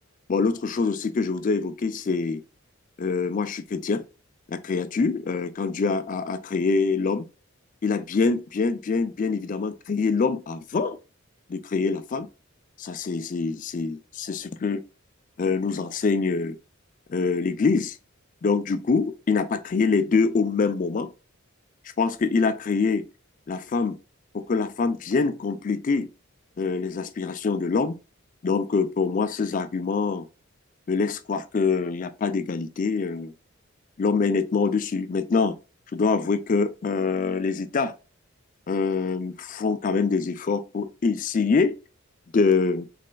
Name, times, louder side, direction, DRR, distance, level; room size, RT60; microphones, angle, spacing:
voice 1, 0.3-2.4 3.0-4.0 4.5-7.3 7.8-11.0 11.5-12.3 12.8-14.8 15.4-16.5 17.1-18.0 18.4-21.1 22.0-23.0 23.5-23.9 24.3-26.1 26.6-28.0 28.4-30.2 30.9-33.3 34.0-35.5 35.9-37.9 38.7-41.7 42.3-42.9, left 4 dB, 40° left, 0.3 m, -25 dB
4.1 x 3.2 x 2.2 m
head